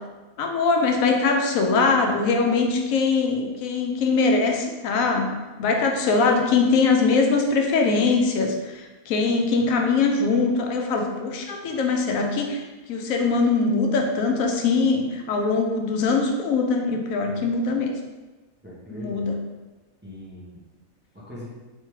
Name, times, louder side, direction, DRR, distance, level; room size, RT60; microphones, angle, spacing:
voice 1, 0.4-5.3 5.6-17.9 18.9-19.3, left 4 dB, 80° left, 2 dB, 1.0 m, -22 dB
voice 2, 18.6-19.3 20.0-20.6 21.1-21.5, left 1 dB, 10° right, -7 dB, 0.6 m, -40 dB
3.4 x 3.2 x 3.1 m, 1.2 s
omnidirectional pair, 1.4 m